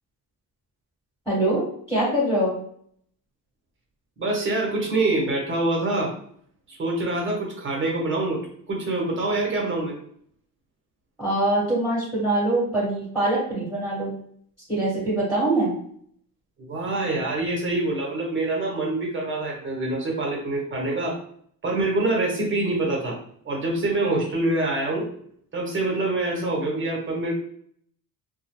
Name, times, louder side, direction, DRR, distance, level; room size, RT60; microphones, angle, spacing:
voice 1, 1.2-2.5 11.2-14.1 14.7-15.7, right 1 dB, 5° left, -8 dB, 1.4 m, -23 dB
voice 2, 4.2-6.1 6.7-8.4 8.7-9.9 16.6-21.2 21.6-23.2 23.4-25.1 25.5-27.3, right 2 dB, 30° right, -1 dB, 1.0 m, -25 dB
2.2 x 2.2 x 3.1 m, 0.62 s
cardioid pair, 115°, 38 cm